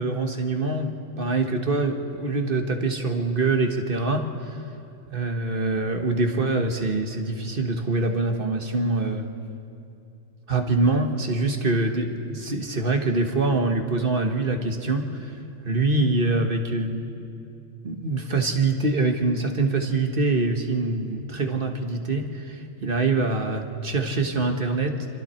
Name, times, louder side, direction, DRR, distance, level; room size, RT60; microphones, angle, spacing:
voice 1, 0.0-4.6 5.1-9.3 10.5-15.3 15.6-17.0 17.8-25.1, right 3 dB, 40° right, 4 dB, 1.5 m, -24 dB
26.0 x 26.0 x 4.4 m, 2.7 s
omnidirectional pair, 1.4 m